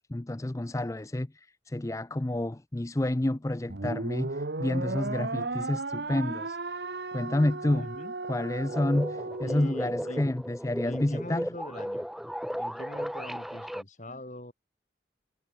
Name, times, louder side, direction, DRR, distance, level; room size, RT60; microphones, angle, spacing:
voice 1, 0.1-6.8 7.1-7.9 8.3-11.4, left 1 dB, 15° left, 0.5 m, -29 dB
sound 1, 3.7-10.2, right 3 dB, 65° right, 1.2 m, -35 dB
voice 2, 7.7-8.1 9.4-10.3 10.8-12.1 12.5-14.5, left 1 dB, 40° left, 4.6 m, -42 dB
sound 2, 8.7-13.8, equal, ahead, 2.5 m, -35 dB
head